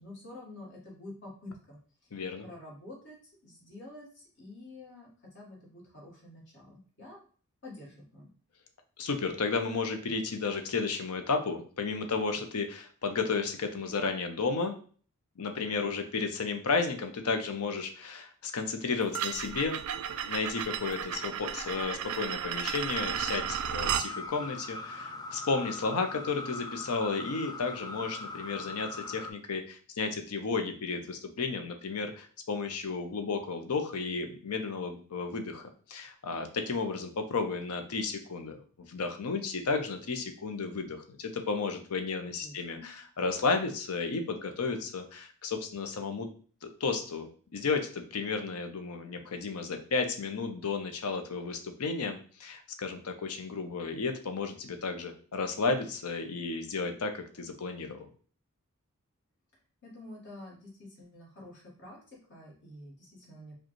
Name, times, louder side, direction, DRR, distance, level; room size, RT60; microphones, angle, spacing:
voice 1, 0.0-5.1 5.3-7.2 7.6-8.3 42.4-42.9 59.8-63.6, left 1 dB, 55° left, -3 dB, 1.5 m, -48 dB
voice 2, 2.1-2.4 9.0-14.8 15.4-19.8 20.3-35.6 35.9-38.6 38.9-46.3 46.6-58.1, left 4 dB, 80° left, 6 dB, 0.6 m, -33 dB
sound 1, 19.1-24.1, right 9 dB, 70° right, 0.3 m, -34 dB
sound 2, 23.9-29.3, left 3 dB, 20° left, 0.3 m, -41 dB
4.8 x 2.3 x 3.0 m, 0.43 s
head